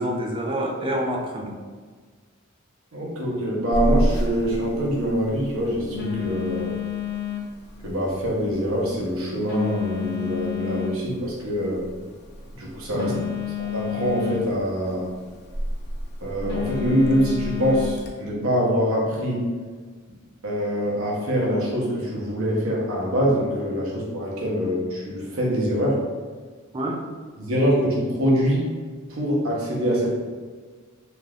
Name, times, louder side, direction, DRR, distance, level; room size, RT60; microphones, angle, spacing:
voice 1, 0.0-1.6 12.9-13.2 26.7-27.0, equal, 25° right, 0 dB, 0.4 m, -27 dB
voice 2, 2.9-6.8 7.8-11.8 12.6-13.1 13.7-15.1 16.2-19.5 20.4-26.0 27.4-28.6 29.1-30.1, equal, 65° right, -3 dB, 0.8 m, -24 dB
Telephone, 3.7-18.1, left 3 dB, 50° left, 0.4 m, -30 dB
3.2 x 2.5 x 2.3 m, 1.5 s
head